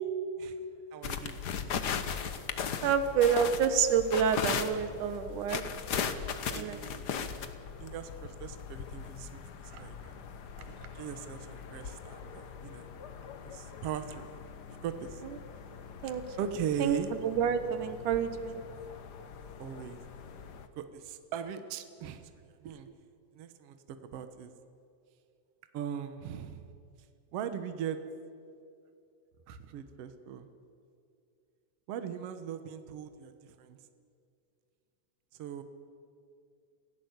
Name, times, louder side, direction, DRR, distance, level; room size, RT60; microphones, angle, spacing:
voice 1, 0.9-1.4 6.5-10.3 11.0-12.9 13.4-14.3 14.7-15.2 16.4-17.1 19.6-20.0 20.8-22.9 23.4-23.8 24.1-24.5 25.7-26.6 27.3-28.0 29.7-30.5 31.9-33.8 35.3-35.6, right 8 dB, 60° right, 9 dB, 1.9 m, -39 dB
sound 1, 1.0-20.7, left 7 dB, 80° left, 0.9 m, -39 dB
voice 2, 2.8-5.6 6.5-6.8 9.7-9.8 16.0-16.2 16.8-17.0 17.2-18.6 29.5-29.6, right 7 dB, 85° right, 10 dB, 2.7 m, -28 dB
27.5 x 16.5 x 8.1 m, 2.5 s
omnidirectional pair, 3.5 m